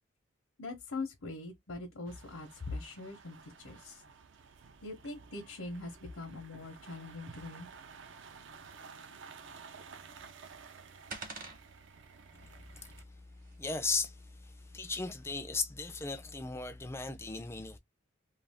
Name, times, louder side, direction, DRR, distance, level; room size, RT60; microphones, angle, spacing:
voice 1, 0.6-4.0 4.8-7.7, left 3 dB, 80° left, 0.7 m, -42 dB
sound 1, 2.1-13.0, right 5 dB, 60° right, 0.4 m, -53 dB
sound 2, 9.9-15.4, right 4 dB, 40° right, 0.9 m, -52 dB
voice 2, 13.6-14.1 14.7-17.8, left 4 dB, 10° left, 0.3 m, -36 dB
2.5 x 2.2 x 3.4 m
head